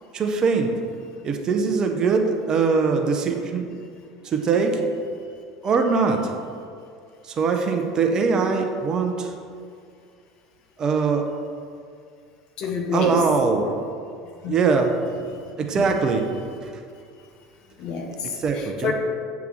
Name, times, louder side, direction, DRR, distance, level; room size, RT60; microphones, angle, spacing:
voice 1, 0.1-0.8 1.2-3.7 4.2-4.8 5.6-6.3 7.2-9.3 10.8-11.3 12.9-13.7 14.5-14.9 15.6-16.3 18.4-18.9, right 5 dB, 35° right, 4 dB, 0.8 m, -22 dB
voice 2, 12.6-13.4 14.4-14.8 15.7-16.0 17.8-18.9, left 4 dB, 45° left, 2 dB, 1.0 m, -29 dB
8.2 x 3.5 x 6.2 m, 2.3 s
figure-of-eight pair, 70°, 2 cm